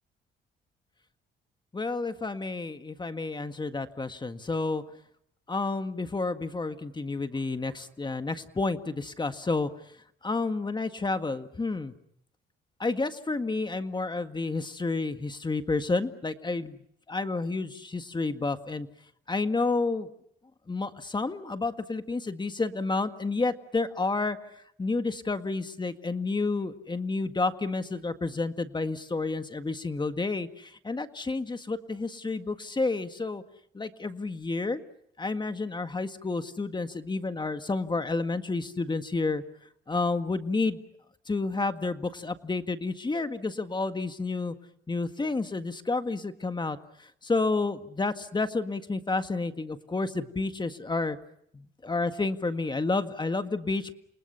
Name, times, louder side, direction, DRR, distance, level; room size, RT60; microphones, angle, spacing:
voice 1, 1.7-4.8 5.5-9.7 10.2-11.9 12.8-16.8 17.1-18.9 19.3-20.1 20.7-24.4 24.8-33.4 33.7-34.8 35.2-39.4 39.9-40.8 41.3-44.6 44.9-46.8 47.2-51.2 51.5-53.9, left 3 dB, 20° left, 9 dB, 1.8 m, -30 dB
29.5 x 28.5 x 5.8 m, 0.72 s
cardioid pair, 90°, 20 cm